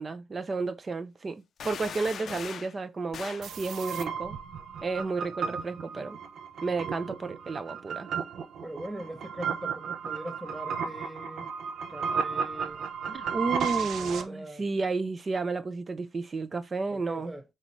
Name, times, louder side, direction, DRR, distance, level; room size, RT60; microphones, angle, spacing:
voice 1, 0.0-4.4 4.8-6.2 6.6-8.1 13.1-17.3, right 3 dB, 35° right, 0.7 m, -32 dB
sound 1, 1.6-2.8 3.1-3.5, left 7 dB, 60° left, 0.5 m, -40 dB
sound 2, 3.4-14.2, right 6 dB, 70° right, 0.6 m, -34 dB
voice 2, 8.6-11.5 11.9-12.8 13.6-14.6 16.9-17.4, right 1 dB, 10° right, 1.1 m, -41 dB
4.1 x 3.9 x 3.1 m
cardioid pair, 90°, 0 cm